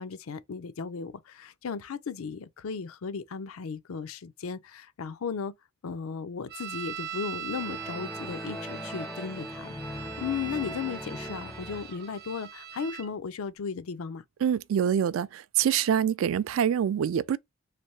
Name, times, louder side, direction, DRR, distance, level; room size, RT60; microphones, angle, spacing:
voice 1, 0.0-5.5 5.8-14.2, left 5 dB, 85° left, 0.5 m, -36 dB
sound 1, 6.5-13.1, right 9 dB, 50° right, 0.8 m, -41 dB
sound 2, 7.5-12.1, left 1 dB, 5° left, 0.4 m, -40 dB
voice 2, 14.4-17.4, right 8 dB, 70° right, 0.3 m, -25 dB
3.3 x 3.1 x 2.7 m
head